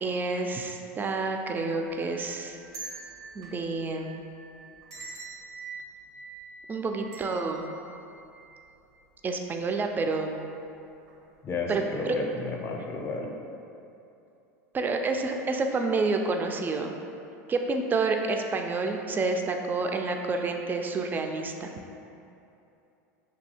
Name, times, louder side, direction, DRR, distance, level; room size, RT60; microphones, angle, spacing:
voice 1, 0.0-2.6 3.3-4.2 6.7-7.6 9.2-10.4 11.7-12.1 14.7-16.9 17.5-21.7, right 3 dB, 20° right, 4 dB, 0.3 m, -29 dB
sound 1, 1.8-9.0 9.3-9.4 10.4-10.6 11.0-11.2, right 4 dB, 75° right, 0.6 m, -45 dB
voice 2, 11.4-13.3, left 3 dB, 30° left, 0 dB, 0.5 m, -32 dB
2.7 x 2.6 x 4.2 m, 2.8 s
hypercardioid pair, 95°, 9 cm